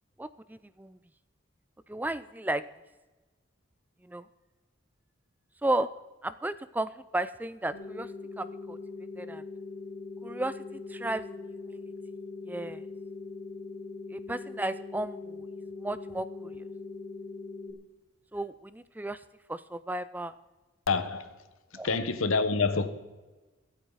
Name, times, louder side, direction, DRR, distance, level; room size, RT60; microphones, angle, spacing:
voice 1, 0.2-1.0 1.9-2.6 4.1-4.2 5.6-5.9 6.2-8.1 8.4-8.8 9.2-9.4 10.2-11.2 11.7-11.8 12.5-12.8 14.1-15.4 15.8-16.6 18.3-19.2 19.5-20.3 21.7-21.9, right 1 dB, 10° right, 0.3 m, -34 dB
sound 1, 7.7-17.7, left 3 dB, 65° left, 3.3 m, -41 dB
voice 2, 20.9-21.3 21.8-22.9, left 4 dB, 90° left, 1.2 m, -27 dB
24.0 x 8.7 x 4.0 m
head